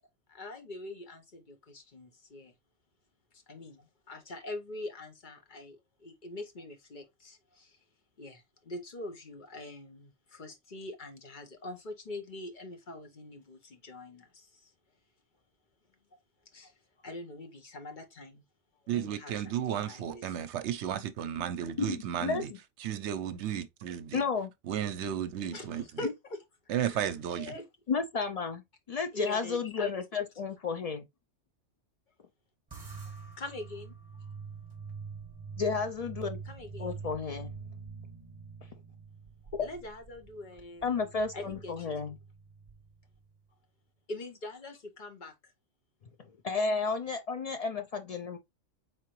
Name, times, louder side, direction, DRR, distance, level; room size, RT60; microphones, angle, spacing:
voice 1, 0.3-2.5 3.3-7.8 8.2-14.7 16.5-16.7 17.0-18.4 18.9-20.4 25.5-26.4 26.7-27.7 29.1-29.9 33.4-33.9 36.4-36.9 39.6-41.9 44.1-45.3, left 2 dB, 45° left, 1.0 m, -44 dB
voice 2, 18.9-22.5 22.8-24.2 24.7-25.8 26.7-27.5, right 10 dB, 70° right, 0.8 m, -33 dB
voice 3, 21.8-22.6 24.1-24.5 26.0-26.1 27.9-31.1 35.6-36.4 36.8-37.6 39.6-39.7 40.8-42.2 46.4-48.4, left 5 dB, 70° left, 0.3 m, -32 dB
sound 1, 32.7-43.3, right 5 dB, 20° right, 0.9 m, -45 dB
4.6 x 3.7 x 3.0 m
omnidirectional pair, 1.3 m